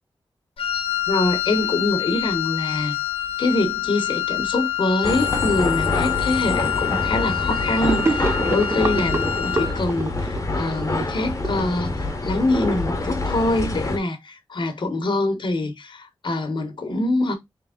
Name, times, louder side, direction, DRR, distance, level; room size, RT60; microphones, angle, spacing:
Wind instrument woodwind instrument, 0.6-9.8, left 11 dB, 80° left, 0.5 m, -26 dB
voice 1, 1.1-3.0 3.4-17.3, left 2 dB, 60° left, 1.0 m, -24 dB
sound 1, 5.0-14.0, left 2 dB, 35° left, 1.0 m, -26 dB
Gurgling / Sink (filling or washing), 7.8-12.3, right 3 dB, 30° right, 0.4 m, -27 dB
3.5 x 3.3 x 3.6 m
wide cardioid pair, 95°, 9 cm